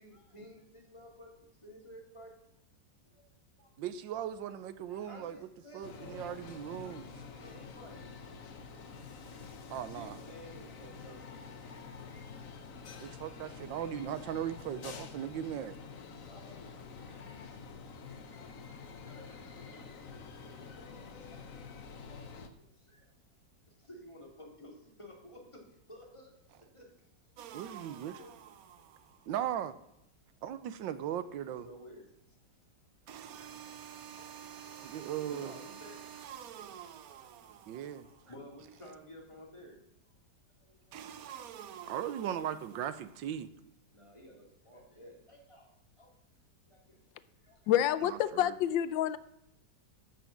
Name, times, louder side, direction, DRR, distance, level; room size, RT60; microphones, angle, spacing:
voice 1, 0.0-2.4 3.0-3.7 4.8-8.0 9.0-12.4 13.4-13.8 14.3-14.4 15.2-15.3 16.1-21.6 21.9-26.4 26.7-26.9 28.2-28.4 31.6-36.0 36.4-39.8 40.1-40.2 40.6-41.2 43.9-45.7 46.0-46.1 46.6-47.0 47.4-47.7, equal, 15° left, -1 dB, 2.8 m, -55 dB
voice 2, 3.8-5.4 5.7-7.0 9.7-10.2 13.0-15.8 27.5-28.2 29.3-29.7 30.4-31.7 34.8-35.5 37.7-38.1 41.9-43.5 48.0-48.5, right 10 dB, 85° right, 13 dB, 1.5 m, -38 dB
sound 1, 5.8-22.5, left 5 dB, 50° left, 1.3 m, -48 dB
sound 2, 27.4-29.3 33.1-38.3 40.9-43.3, right 9 dB, 65° right, 1.0 m, -49 dB
voice 3, 47.7-49.2, left 11 dB, 85° left, 15 dB, 1.3 m, -28 dB
13.5 x 6.0 x 7.2 m, 0.81 s
omnidirectional pair, 2.0 m